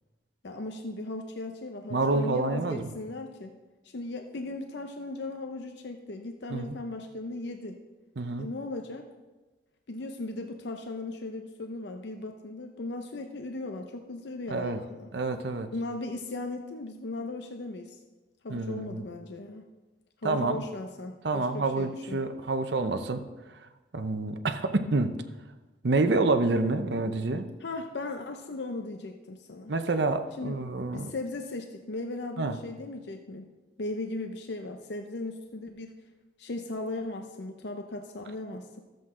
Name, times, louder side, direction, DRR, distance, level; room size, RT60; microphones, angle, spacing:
voice 1, 0.4-3.6 3.8-7.8 8.4-9.1 9.9-15.1 15.7-18.0 18.4-19.7 20.2-22.2 27.6-29.7 30.4-30.6 30.9-36.0 36.4-38.8, left 2 dB, 65° left, 4 dB, 0.6 m, -37 dB
voice 2, 1.9-2.9 6.5-6.8 8.2-8.5 14.5-14.8 15.1-15.7 18.5-19.0 20.2-20.6 21.2-23.2 23.9-25.2 25.8-27.5 29.7-31.1 32.4-32.6, right 3 dB, 65° right, 8 dB, 0.7 m, -28 dB
13.5 x 7.8 x 3.7 m, 1.2 s
head